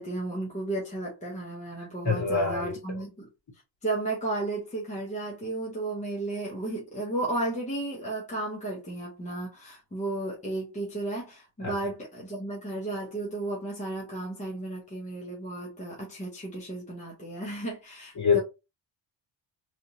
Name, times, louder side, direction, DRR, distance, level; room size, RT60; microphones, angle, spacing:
voice 1, 0.0-3.3 3.8-18.4, right 2 dB, 15° left, 1.0 m, -34 dB
voice 2, 1.8-3.0 11.6-11.7 18.2-18.4, left 5 dB, 40° left, 2.0 m, -26 dB
3.4 x 2.6 x 2.8 m
cardioid pair, 125°, 47 cm